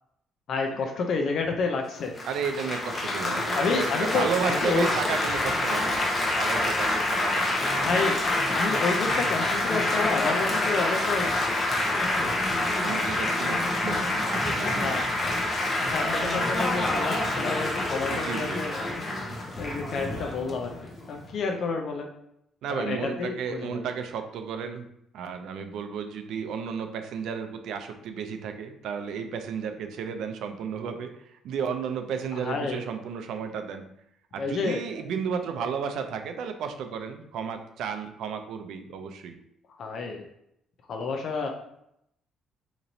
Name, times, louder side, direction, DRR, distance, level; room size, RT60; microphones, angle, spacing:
voice 1, 0.5-2.1 3.2-4.9 7.8-8.2 8.5-11.6 14.6-15.0 15.8-22.1 22.7-23.8 32.4-32.8 34.4-35.0 39.8-40.2 40.9-41.5, left 4 dB, 60° left, 2 dB, 0.5 m, -30 dB
Laughter / Applause / Chatter, 2.2-21.3, left 2 dB, 35° left, 0.8 m, -27 dB
voice 2, 2.2-6.1 6.3-8.0 12.8-14.9 18.1-18.6 22.6-24.9 25.1-33.8 34.3-39.3, right 6 dB, 75° right, 6 dB, 0.4 m, -33 dB
2.9 x 2.6 x 4.0 m, 0.76 s
cardioid pair, 95°, 0 cm